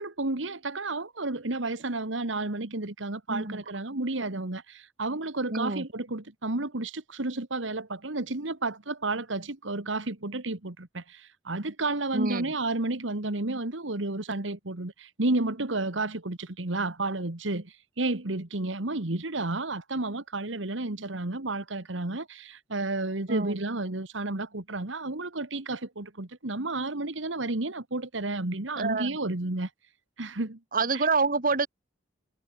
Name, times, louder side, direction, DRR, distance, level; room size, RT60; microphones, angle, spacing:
voice 1, 0.0-29.7 30.2-30.6 30.9-31.1, right 2 dB, 75° right, 1.9 m, -31 dB
voice 2, 5.5-5.8 12.1-12.5 23.3-23.6 28.8-29.2 30.7-31.7, right 4 dB, 50° right, 2.5 m, -27 dB
head